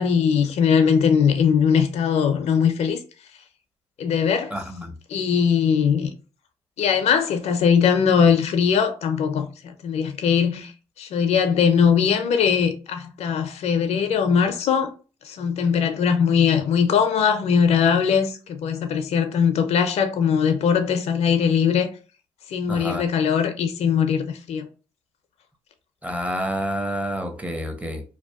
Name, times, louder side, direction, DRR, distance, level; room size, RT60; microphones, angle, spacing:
voice 1, 0.0-3.0 4.0-4.5 5.1-6.1 6.8-10.7 11.0-14.9 15.2-21.9 22.5-24.7, left 7 dB, 65° left, 0.4 m, -20 dB
voice 2, 4.5-5.0 22.7-23.1 26.0-28.0, equal, 10° right, 0.6 m, -28 dB
2.6 x 2.1 x 2.3 m
supercardioid pair, 55°, 12 cm